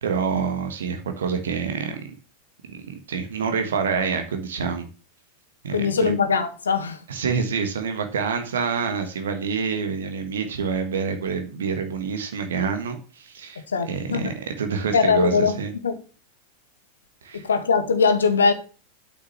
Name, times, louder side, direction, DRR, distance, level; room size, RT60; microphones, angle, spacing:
voice 1, 0.0-2.1 2.7-4.9 5.6-6.1 7.1-15.7 17.2-17.4, right 6 dB, 65° right, 1.6 m, -27 dB
voice 2, 5.7-7.0 13.7-14.3 14.9-15.6 15.8-16.0 17.3-18.5, left 5 dB, 70° left, 1.6 m, -21 dB
8.2 x 6.2 x 6.9 m
figure-of-eight pair, 90°, 0 cm